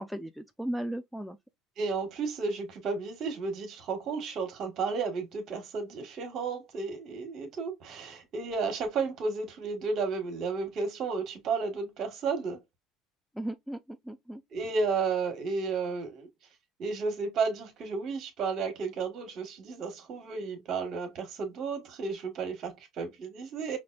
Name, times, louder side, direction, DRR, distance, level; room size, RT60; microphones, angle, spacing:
voice 1, 0.0-1.4 13.4-14.4, right 1 dB, ahead, 0.3 m, -36 dB
voice 2, 1.8-12.6 14.5-16.3 16.8-23.8, right 4 dB, 45° right, 1.3 m, -33 dB
5.2 x 2.5 x 2.3 m
cardioid pair, 130°, 0 cm